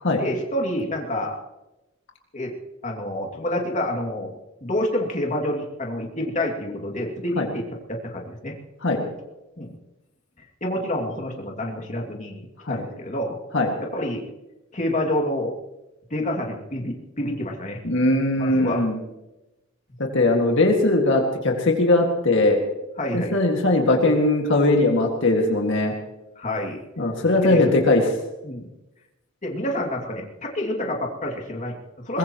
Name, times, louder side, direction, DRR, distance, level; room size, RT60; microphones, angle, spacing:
voice 1, 0.2-1.4 2.3-2.5 2.8-8.6 9.6-9.7 10.4-13.4 13.8-14.3 14.7-15.5 16.1-17.8 18.4-18.8 23.0-23.4 26.4-26.8 27.4-27.9 28.4-28.7 29.4-32.2, left 1 dB, 35° left, 0 dB, 2.6 m, -28 dB
voice 2, 17.8-19.0 20.1-22.6 23.1-25.9 27.0-28.0 32.1-32.2, left 2 dB, 60° left, 1 dB, 2.1 m, -20 dB
22.5 x 21.0 x 3.1 m, 1.0 s
head